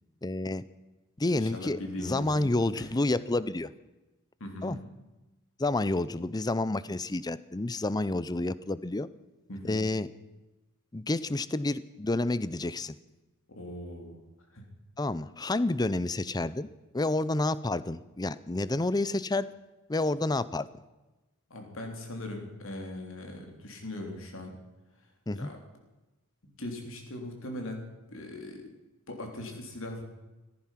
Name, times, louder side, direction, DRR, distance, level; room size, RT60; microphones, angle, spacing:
voice 1, 0.2-0.6 1.2-3.7 4.6-4.8 5.6-9.1 9.6-10.1 10.9-13.0 15.0-16.7 16.9-19.5 19.9-20.7 25.3-25.5, left 2 dB, 20° left, 17 dB, 0.5 m, -29 dB
voice 2, 1.3-2.9 4.4-4.8 9.5-9.9 13.5-14.2 14.5-14.7 21.5-24.6 25.4-25.6 26.4-28.7 29.1-30.0, left 1 dB, 60° left, 3 dB, 3.5 m, -40 dB
15.5 x 14.5 x 5.9 m, 1.1 s
head